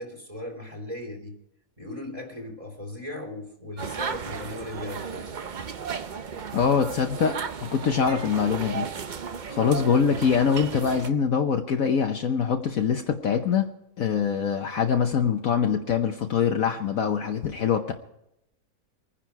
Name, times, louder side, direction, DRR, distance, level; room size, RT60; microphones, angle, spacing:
voice 1, 0.0-1.4 1.8-5.4, left 1 dB, 20° right, 2.7 m, -37 dB
sound 1, 3.8-11.1, right 6 dB, 65° right, 0.4 m, -35 dB
voice 2, 6.5-8.9 9.5-13.7 14.0-17.9, left 7 dB, 60° left, 1.2 m, -24 dB
24.0 x 10.0 x 4.7 m
omnidirectional pair, 1.8 m